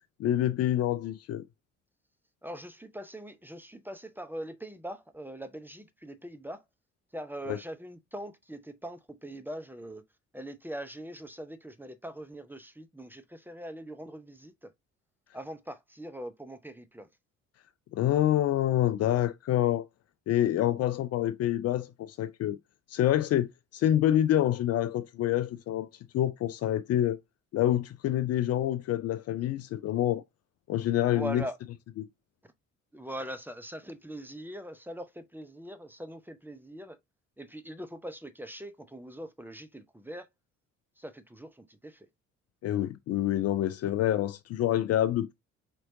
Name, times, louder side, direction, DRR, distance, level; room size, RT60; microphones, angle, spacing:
voice 1, 0.2-1.4 7.5-7.6 17.9-19.9 20.3-22.6 22.9-25.9 26.1-27.2 27.5-30.2 30.7-31.4 32.0-32.1 42.6-45.3, left 12 dB, 40° left, 0.5 m, -27 dB
voice 2, 2.4-6.6 7.1-10.0 10.3-14.7 15.3-17.1 31.1-31.6 32.9-37.0 37.4-40.3 41.0-42.1 43.8-43.9, right 1 dB, 5° right, 0.7 m, -42 dB
4.5 x 4.3 x 2.6 m
figure-of-eight pair, 45°, 38 cm